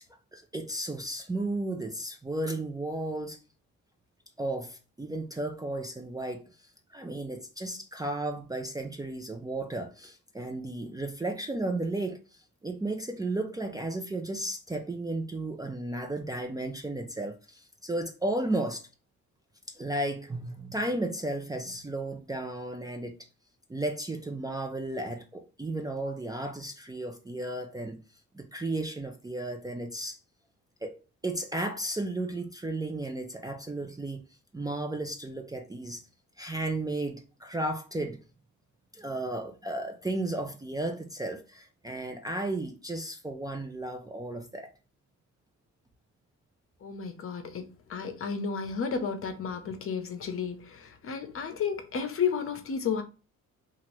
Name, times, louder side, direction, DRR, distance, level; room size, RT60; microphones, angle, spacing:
voice 1, 0.3-3.4 4.4-6.4 6.9-18.9 19.7-23.2 23.7-28.0 28.3-30.2 30.8-31.0 31.2-34.2 34.5-36.0 36.4-38.2 38.9-44.7, right 2 dB, 15° right, 0.4 m, -34 dB
voice 2, 46.8-53.0, left 6 dB, 45° left, 0.7 m, -32 dB
2.8 x 2.5 x 3.0 m
cardioid pair, 90°, 30 cm